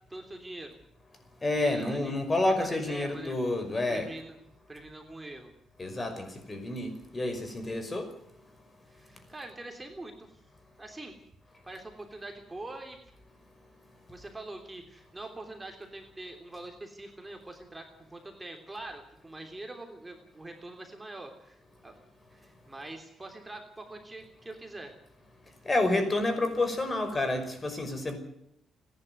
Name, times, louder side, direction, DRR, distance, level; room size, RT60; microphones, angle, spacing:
voice 1, 0.1-0.8 1.5-2.1 2.6-3.4 3.9-4.4 4.7-5.5 8.9-10.3 10.8-11.1 11.6-13.0 14.1-21.9 22.3-24.9, right 2 dB, 15° right, 4 dB, 3.3 m, -44 dB
voice 2, 1.4-4.1 5.8-8.0 25.7-28.2, left 2 dB, 25° left, 8 dB, 5.6 m, -29 dB
29.5 x 11.0 x 9.5 m, 0.74 s
cardioid pair, 90°, 0 cm